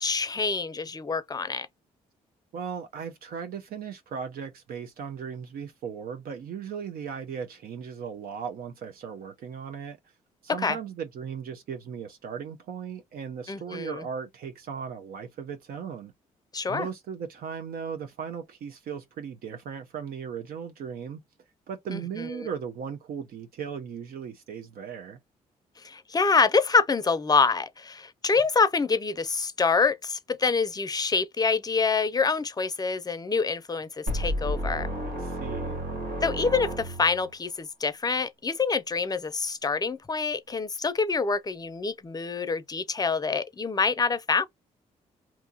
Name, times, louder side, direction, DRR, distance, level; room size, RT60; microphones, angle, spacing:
voice 1, 0.0-1.7 10.6-10.8 13.5-14.0 16.5-16.9 21.9-22.5 25.8-34.9 36.2-44.4, left 4 dB, 25° left, 0.5 m, -26 dB
voice 2, 2.5-10.0 10.4-16.1 16.7-21.2 21.7-25.2 35.1-35.8, right 7 dB, 65° right, 0.6 m, -37 dB
sound 1, 34.1-37.3, equal, 85° right, 1.8 m, -31 dB
2.9 x 2.3 x 3.7 m
supercardioid pair, 55°, 16 cm